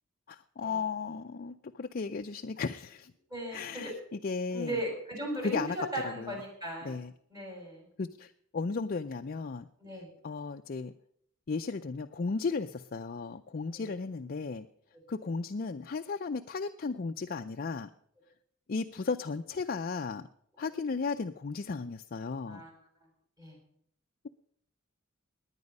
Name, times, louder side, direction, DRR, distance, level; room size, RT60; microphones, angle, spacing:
voice 1, 0.3-3.1 3.5-4.8 5.4-5.8 6.0-6.4 6.8-7.1 8.0-9.7 9.9-10.9 11.5-14.7 15.1-17.9 18.7-20.3 20.6-22.6, left 4 dB, 45° left, 6 dB, 0.5 m, -35 dB
voice 2, 3.3-3.9 4.5-7.0 7.3-7.9 9.8-10.1 13.7-13.9 22.5-22.7 23.4-23.5, right 1 dB, 20° right, 0 dB, 6.1 m, -37 dB
19.0 x 9.8 x 5.4 m, 0.68 s
head